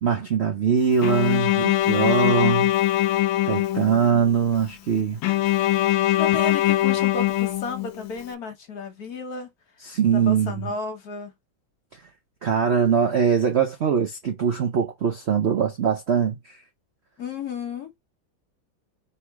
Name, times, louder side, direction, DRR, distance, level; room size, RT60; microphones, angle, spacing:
voice 1, 0.0-2.7 3.4-5.2 9.8-10.7 12.4-16.6, right 7 dB, 85° right, 0.5 m, -22 dB
Bowed string instrument, 1.0-4.2 5.2-8.1, left 14 dB, 85° left, 1.4 m, -22 dB
voice 2, 6.2-9.5 10.1-11.3 17.2-17.9, left 4 dB, 55° left, 1.4 m, -33 dB
3.4 x 2.8 x 4.6 m
omnidirectional pair, 2.2 m